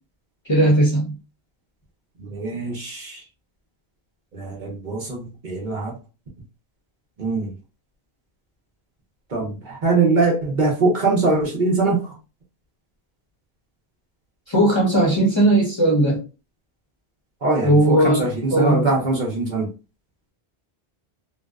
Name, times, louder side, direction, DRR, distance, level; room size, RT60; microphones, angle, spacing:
voice 1, 0.5-1.1 14.5-16.2 17.6-18.9, right 1 dB, 30° left, 0.7 m, -18 dB
voice 2, 2.2-3.2 4.3-6.0 7.2-7.5 9.3-12.0 17.4-19.7, right 3 dB, 50° right, 0.8 m, -22 dB
2.6 x 2.1 x 2.3 m
omnidirectional pair, 1.1 m